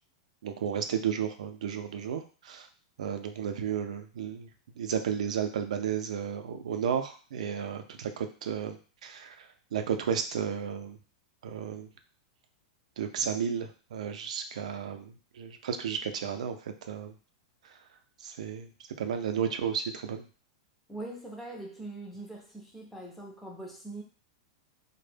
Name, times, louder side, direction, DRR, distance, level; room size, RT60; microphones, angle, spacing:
voice 1, 0.4-2.7 3.0-4.5 4.8-8.8 9.0-9.3 9.7-11.0 11.4-11.9 13.0-16.6 16.9-17.1 18.2-18.7 19.0-20.2, right 8 dB, 75° right, 7 dB, 0.4 m, -33 dB
voice 2, 20.9-24.0, right 2 dB, 5° left, -2 dB, 0.4 m, -42 dB
2.1 x 2.0 x 3.2 m, 0.37 s
supercardioid pair, 180°, 4 cm